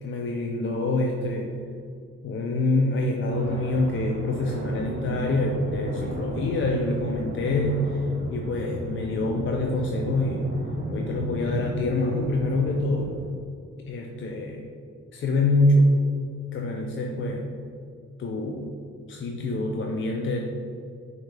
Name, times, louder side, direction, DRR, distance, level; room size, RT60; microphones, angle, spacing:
voice 1, 0.0-1.5 2.2-10.4 10.9-13.1 13.9-14.6 15.1-15.9 16.5-17.5 18.2-18.7 19.1-20.4, left 2 dB, 35° left, 1 dB, 0.5 m, -26 dB
sound 1, 3.3-13.3, right 1 dB, 40° right, 1.2 m, -34 dB
5.8 x 2.7 x 2.3 m, 2.3 s
hypercardioid pair, 45°, 35 cm